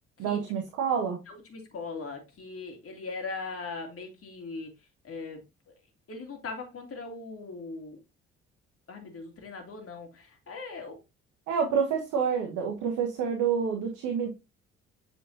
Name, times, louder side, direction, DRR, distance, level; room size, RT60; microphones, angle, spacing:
voice 1, 0.2-1.2 11.5-14.3, right 7 dB, 65° right, 1.4 m, -28 dB
voice 2, 1.3-4.7 5.0-5.4 6.1-8.0 8.9-11.0, left 3 dB, 40° left, 2.8 m, -39 dB
8.2 x 5.1 x 2.8 m
hypercardioid pair, 45°, 33 cm